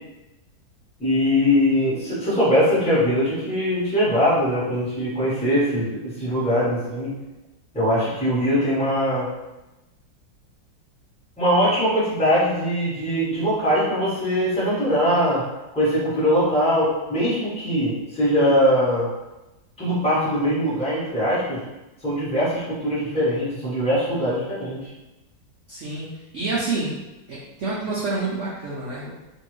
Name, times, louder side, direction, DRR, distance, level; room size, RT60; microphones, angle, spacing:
voice 1, 1.0-7.1 7.7-9.3 11.4-15.4 15.7-19.1 19.8-21.6 22.0-24.8, equal, 5° left, -10 dB, 0.9 m, -21 dB
voice 2, 25.7-26.1 26.3-26.9 27.3-29.1, right 3 dB, 85° right, -7 dB, 0.6 m, -28 dB
3.0 x 2.6 x 3.1 m, 1.0 s
omnidirectional pair, 2.0 m